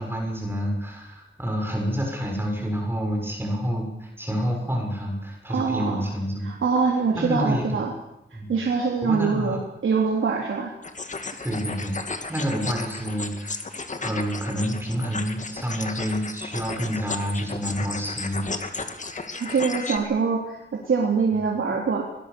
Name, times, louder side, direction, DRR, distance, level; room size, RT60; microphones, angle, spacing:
voice 1, 0.0-6.5 7.1-7.8 8.3-8.5 9.0-9.6 11.4-13.7 14.0-18.5, equal, 10° right, 0 dB, 7.1 m, -28 dB
voice 2, 5.5-6.0 6.4-7.9 8.5-10.7 19.4-22.1, right 5 dB, 90° right, 0 dB, 3.5 m, -24 dB
sound 1, 10.8-20.0, left 3 dB, 40° left, 2.2 m, -34 dB
23.0 x 21.0 x 7.0 m, 0.87 s
wide cardioid pair, 120°, 20 cm